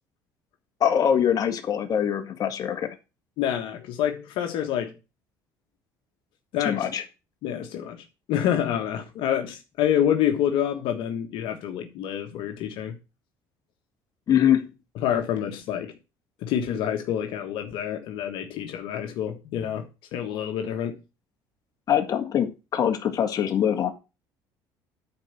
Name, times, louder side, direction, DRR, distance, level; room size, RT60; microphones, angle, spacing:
voice 1, 0.8-3.0 6.6-7.0 14.3-14.7 21.9-23.9, left 9 dB, 45° left, 1.9 m, -23 dB
voice 2, 3.4-4.9 6.5-6.9 7.4-8.0 8.3-12.9 14.9-15.9 16.4-19.8 20.1-21.0, left 10 dB, 75° left, 1.3 m, -27 dB
10.5 x 4.5 x 6.7 m
cardioid pair, 110°, 9 cm